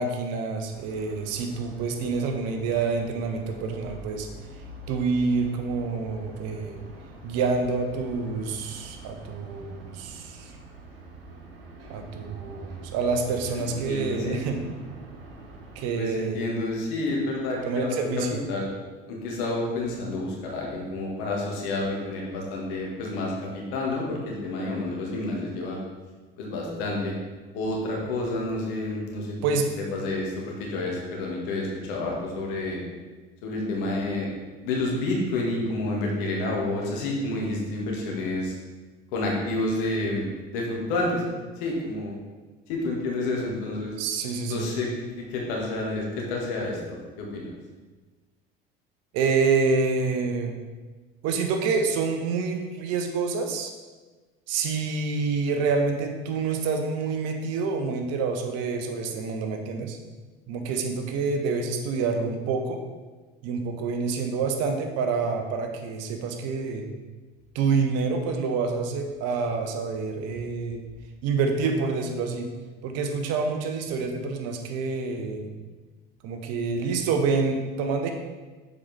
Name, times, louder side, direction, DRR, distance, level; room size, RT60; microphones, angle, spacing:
voice 1, 0.0-4.3 4.9-6.8 7.2-10.5 11.9-14.6 15.7-16.4 17.6-18.4 29.4-29.7 44.0-44.7 49.1-50.6 51.2-53.7 54.5-60.0 60.5-62.8 63.4-66.9 67.5-70.8 71.2-72.5 72.8-75.5 76.2-78.1, right 4 dB, 60° right, 4 dB, 1.0 m, -27 dB
sound 1, 0.7-15.8, right 2 dB, 85° right, 0.9 m, -45 dB
voice 2, 13.5-14.6 15.9-18.7 19.1-25.8 26.4-27.1 27.5-29.4 29.9-32.8 33.4-34.3 34.6-38.5 39.1-40.2 40.5-41.2 41.6-42.2 42.7-44.0 44.5-46.8 47.2-47.5, left 2 dB, 70° left, -1 dB, 1.8 m, -29 dB
6.9 x 5.2 x 3.4 m, 1.3 s
hypercardioid pair, 70°, 29 cm